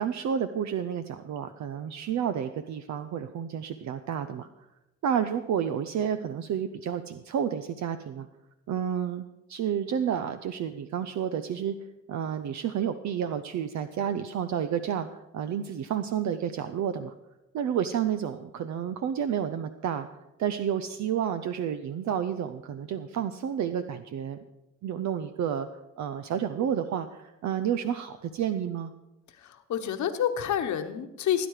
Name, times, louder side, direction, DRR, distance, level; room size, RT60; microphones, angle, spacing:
voice 1, 0.0-4.5 5.0-8.3 8.7-9.2 9.5-11.7 12.1-17.1 17.5-20.1 20.4-24.4 24.8-25.7 26.0-28.9, right 8 dB, 65° right, 10 dB, 0.7 m, -30 dB
voice 2, 29.4-31.5, left 9 dB, 70° left, 7 dB, 1.3 m, -28 dB
17.5 x 9.2 x 4.9 m, 0.97 s
cardioid pair, 90°, 30 cm